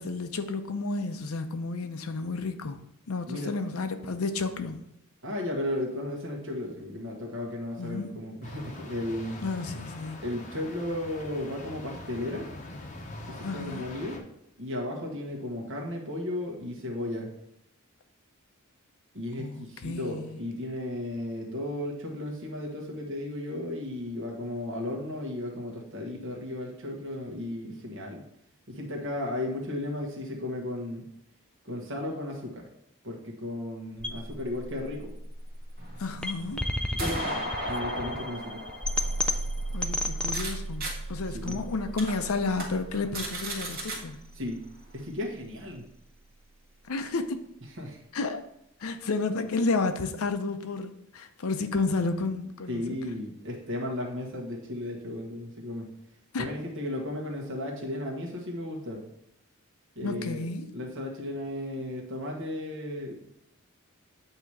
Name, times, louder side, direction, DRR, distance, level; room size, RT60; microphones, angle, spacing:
voice 1, 0.0-2.8 3.1-4.8 7.8-8.1 9.4-10.2 13.4-13.8 19.4-20.4 36.0-36.6 39.7-44.2 46.9-47.4 48.1-48.5 48.8-53.0 56.3-56.5 60.0-60.7, left 3 dB, 90° left, 0.6 m, -31 dB
voice 2, 5.2-9.4 10.2-12.5 13.3-14.2 14.6-17.3 19.1-28.2 28.7-31.1 31.6-32.6 33.0-35.1 36.9-38.6 41.3-41.7 44.3-44.6 44.9-45.8 47.8-48.0 52.7-55.9 56.4-59.0 59.9-60.4 60.7-63.2, left 1 dB, 60° right, 1.4 m, -35 dB
sound 1, 8.4-14.2, left 2 dB, 35° left, 0.7 m, -43 dB
sound 2, 34.0-46.0, equal, 5° left, 0.3 m, -34 dB
sound 3, 35.8-40.5 40.8-40.9 41.4-41.5 42.0-42.1 42.5-42.6 42.9-44.0, right 1 dB, 45° right, 1.5 m, -36 dB
8.1 x 2.9 x 4.8 m
head